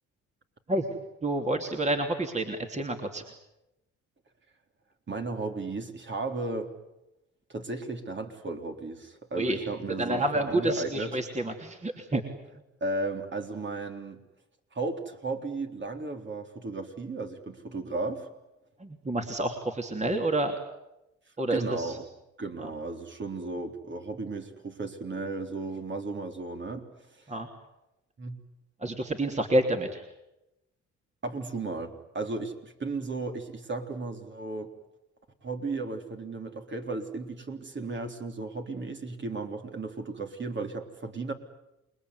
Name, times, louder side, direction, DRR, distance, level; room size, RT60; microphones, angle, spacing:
voice 1, 0.7-3.2 9.3-9.6 10.0-12.2 18.8-20.6 21.4-22.0 22.6-22.7 27.3-27.5 28.8-30.0, right 1 dB, 25° right, 3 dB, 3.1 m, -29 dB
voice 2, 5.1-6.7 7.5-11.2 12.8-14.2 14.7-18.3 21.5-22.0 22.4-26.9 27.1-27.3 28.2-28.4 31.2-34.7 35.4-41.3, right 3 dB, 40° right, 4 dB, 3.8 m, -35 dB
28.5 x 21.0 x 9.7 m, 0.92 s
cardioid pair, 90°, 30 cm